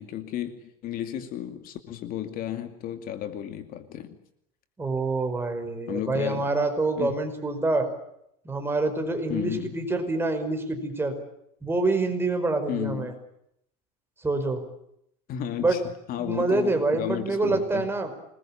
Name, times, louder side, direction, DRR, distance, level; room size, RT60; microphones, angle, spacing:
voice 1, 0.0-4.2 5.9-6.4 7.0-7.2 9.3-9.7 12.7-13.1 15.3-15.8 16.1-17.9, left 11 dB, 50° left, 8 dB, 2.5 m, -33 dB
voice 2, 4.8-7.9 8.4-11.1 11.6-13.1 14.2-14.6 15.6-15.8 16.2-18.1, right 3 dB, 10° right, 5 dB, 5.1 m, -26 dB
27.0 x 21.0 x 8.8 m, 0.77 s
cardioid pair, 140°, 20 cm